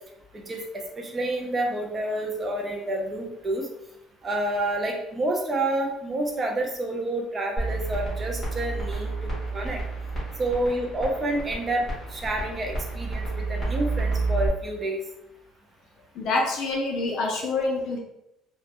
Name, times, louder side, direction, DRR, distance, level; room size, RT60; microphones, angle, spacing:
voice 1, 1.0-3.7 4.2-9.1 9.5-9.8 10.4-11.8 12.1-15.0, right 1 dB, 20° right, 1 dB, 0.4 m, -28 dB
sound 1, 7.6-14.5, right 3 dB, 10° left, 0.9 m, -30 dB
voice 2, 16.2-18.0, left 3 dB, 50° left, 0 dB, 0.4 m, -26 dB
2.1 x 2.1 x 2.8 m, 0.83 s
cardioid pair, 175°, 0 cm